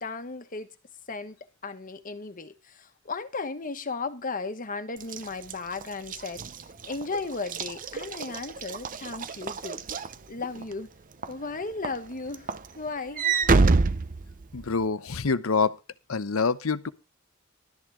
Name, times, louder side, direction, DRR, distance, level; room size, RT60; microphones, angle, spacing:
voice 1, 0.0-0.7 1.1-1.4 1.6-9.8 10.3-10.9 11.3-13.3, left 4 dB, 40° left, 1.3 m, -35 dB
Walk footsteps / Slam, 5.0-10.7 11.2-11.5 11.8-14.8, right 4 dB, 40° right, 0.7 m, -27 dB
voice 2, 14.5-15.8 16.1-16.9, left 4 dB, 80° left, 0.8 m, -26 dB
13.0 x 10.5 x 3.6 m
head